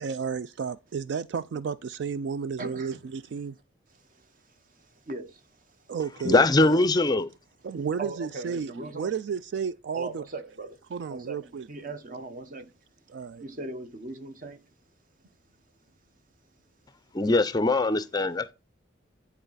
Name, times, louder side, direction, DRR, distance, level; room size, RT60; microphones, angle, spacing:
voice 1, 0.0-3.6 5.9-6.8 7.6-10.2 10.9-11.7 13.1-13.4, right 6 dB, 60° right, 0.3 m, -32 dB
voice 2, 2.6-3.1 3.9-5.9 8.0-9.1 9.9-10.8 11.1-12.7 13.3-14.6, right 2 dB, 45° right, 1.0 m, -40 dB
voice 3, 6.2-7.3 17.1-18.5, left 2 dB, 20° left, 0.4 m, -22 dB
10.0 x 4.1 x 3.9 m
head